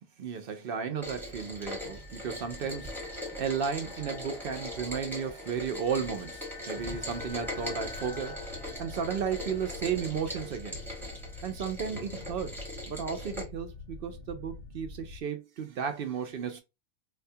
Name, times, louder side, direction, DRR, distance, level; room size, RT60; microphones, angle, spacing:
voice 1, 0.2-8.5 8.8-10.8 11.4-16.6, right 7 dB, 60° right, 0.6 m, -34 dB
Rain, 1.0-13.4, equal, ahead, 1.1 m, -40 dB
sound 1, 1.5-12.3, left 2 dB, 65° left, 1.4 m, -49 dB
sound 2, 7.2-15.2, left 4 dB, 80° left, 0.4 m, -46 dB
4.1 x 2.2 x 2.6 m
omnidirectional pair, 1.4 m